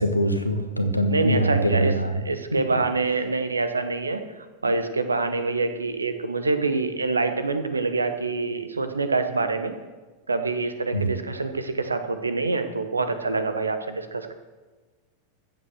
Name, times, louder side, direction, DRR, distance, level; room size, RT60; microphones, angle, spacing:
voice 1, 0.0-2.2 2.5-2.8 10.9-11.1, right 1 dB, 90° left, 5 dB, 1.5 m, -23 dB
voice 2, 1.1-1.9 2.2-4.2 4.6-9.7 10.3-14.3, right 3 dB, 80° right, 9 dB, 1.2 m, -26 dB
14.5 x 8.4 x 6.3 m, 1.3 s
figure-of-eight pair, 90°, 0 cm